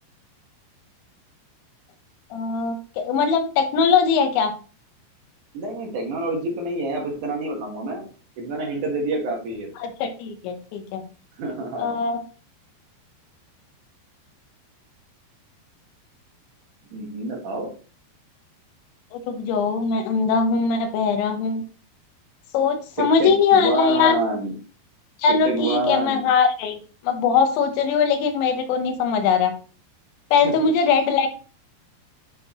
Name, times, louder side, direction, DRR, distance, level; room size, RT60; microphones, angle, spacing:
voice 1, 2.3-4.5 9.8-11.0 11.8-12.2 19.1-21.6 22.5-24.2 25.2-26.8 27.0-29.5 30.3-31.3, left 5 dB, 85° left, 6 dB, 3.2 m, -21 dB
voice 2, 5.5-8.1 8.4-9.7 11.4-11.9 16.9-17.7 23.2-24.5 25.4-26.3 30.4-30.7, right 2 dB, 60° right, 1 dB, 2.2 m, -27 dB
9.7 x 4.6 x 2.9 m, 0.37 s
omnidirectional pair, 5.2 m